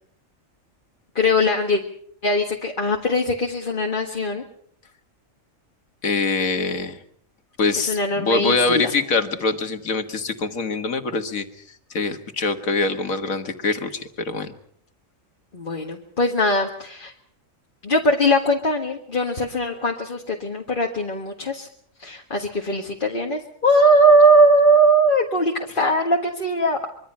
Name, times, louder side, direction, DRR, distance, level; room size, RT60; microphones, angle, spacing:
voice 1, 1.2-1.8 2.2-4.4 7.9-8.9 15.5-17.1 17.8-21.7 22.0-26.9, right 1 dB, 40° left, 1 dB, 1.9 m, -20 dB
voice 2, 6.0-7.0 7.6-11.4 11.9-14.5, left 3 dB, 80° left, 7 dB, 2.2 m, -24 dB
25.0 x 23.5 x 5.6 m, 0.62 s
omnidirectional pair, 1.4 m